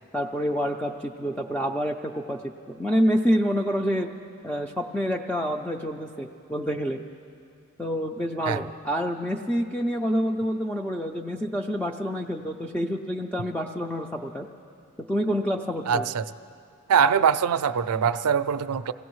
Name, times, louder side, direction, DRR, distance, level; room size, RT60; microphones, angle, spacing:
voice 1, 0.1-4.1 4.4-7.0 7.8-14.5 15.1-16.1, equal, 5° left, 2 dB, 0.4 m, -27 dB
voice 2, 15.9-16.2 16.9-18.9, right 7 dB, 90° right, 13 dB, 0.4 m, -22 dB
27.0 x 16.5 x 3.1 m, 2.4 s
head